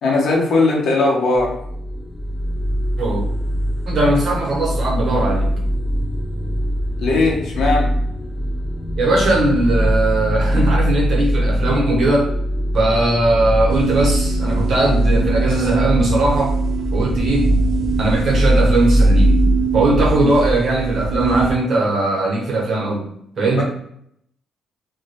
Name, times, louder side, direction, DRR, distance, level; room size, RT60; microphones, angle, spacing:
voice 1, 0.0-1.5 7.0-7.9 23.6-23.7, left 3 dB, 65° left, -2 dB, 0.8 m, -18 dB
sound 1, 1.3-20.5, equal, 20° left, 0.4 m, -21 dB
voice 2, 3.9-5.5 9.0-12.3 12.7-16.6 16.9-17.5 18.0-19.4 19.7-23.1 23.4-23.6, right 2 dB, 60° right, -1 dB, 0.8 m, -19 dB
sound 2, 13.7-21.5, right 5 dB, 80° right, 0.4 m, -23 dB
2.2 x 2.1 x 2.8 m, 0.72 s
cardioid pair, 90°, 0 cm